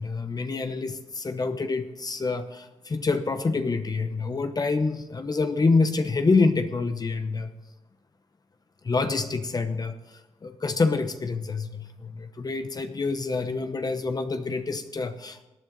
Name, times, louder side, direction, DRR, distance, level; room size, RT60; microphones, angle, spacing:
voice 1, 0.0-7.5 8.8-9.9 10.4-15.4, left 3 dB, 35° left, 8 dB, 1.0 m, -26 dB
17.5 x 9.9 x 4.0 m, 1.1 s
cardioid pair, 70°, 11 cm